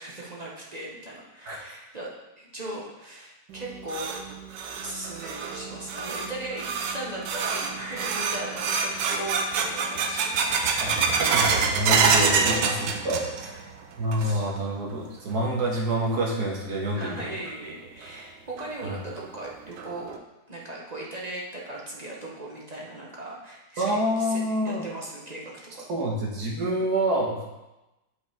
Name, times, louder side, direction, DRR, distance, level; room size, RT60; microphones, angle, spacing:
voice 1, 0.0-4.2 4.8-11.6 11.9-12.8 13.3-13.6 14.2-14.5 16.9-20.2 20.5-25.9, right 1 dB, 30° right, -4 dB, 0.8 m, -38 dB
sound 1, 3.5-13.6 13.9-14.5 14.9-15.0 15.7-15.8 17.5-17.6 18.0-18.1 18.6-18.7 19.2-19.3 19.8-20.2, right 5 dB, 85° right, 1.3 m, -27 dB
voice 2, 11.2-12.6 13.1-13.3 14.0-17.3 18.8-19.0 23.8-24.8 25.9-27.4, right 1 dB, 65° right, -1 dB, 1.8 m, -27 dB
7.9 x 5.2 x 3.5 m, 1.0 s
omnidirectional pair, 1.9 m